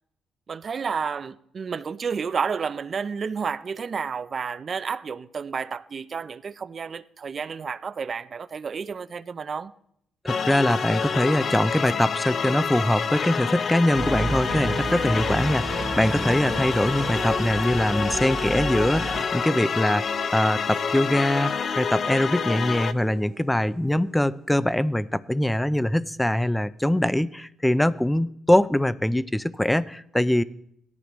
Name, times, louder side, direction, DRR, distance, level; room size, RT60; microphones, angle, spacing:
voice 1, 0.5-9.7, right 6 dB, 45° right, 0.5 m, -31 dB
voice 2, 10.2-30.4, left 1 dB, 5° left, 0.5 m, -23 dB
sound 1, 10.3-22.9, left 6 dB, 50° left, 0.6 m, -28 dB
sound 2, 13.9-19.3, right 3 dB, 25° right, 0.9 m, -32 dB
sound 3, 17.1-25.5, right 7 dB, 80° right, 2.4 m, -45 dB
18.0 x 13.5 x 3.1 m
cardioid pair, 90°, 0 cm